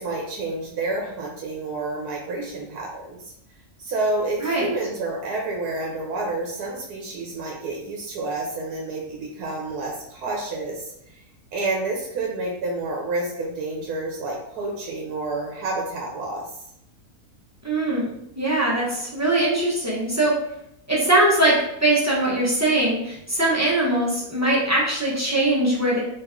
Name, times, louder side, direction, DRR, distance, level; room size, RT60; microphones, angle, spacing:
voice 1, 0.0-3.2 3.8-11.1 11.5-16.5, right 2 dB, 85° right, -1 dB, 1.2 m, -29 dB
voice 2, 17.6-18.1 18.3-20.4 20.9-26.0, right 1 dB, 15° right, -6 dB, 0.8 m, -21 dB
3.3 x 2.9 x 3.6 m, 0.78 s
omnidirectional pair, 1.6 m